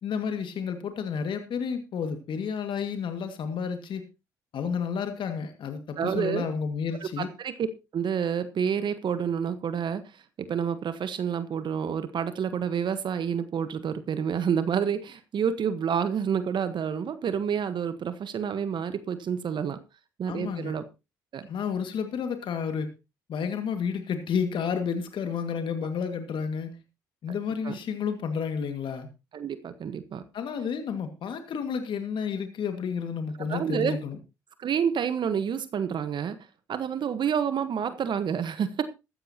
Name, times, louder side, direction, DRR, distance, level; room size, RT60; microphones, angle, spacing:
voice 1, 0.0-4.0 4.5-7.3 20.3-20.8 21.5-22.9 23.3-26.8 27.2-29.1 30.3-34.2, left 6 dB, 60° left, 2.0 m, -31 dB
voice 2, 6.0-6.4 7.2-7.7 7.9-19.8 20.2-20.8 21.3-21.5 27.6-27.8 29.3-30.2 33.5-34.0 34.6-36.4 36.7-38.8, right 7 dB, 55° right, 1.2 m, -29 dB
14.0 x 13.5 x 2.9 m
hypercardioid pair, 50°, 10 cm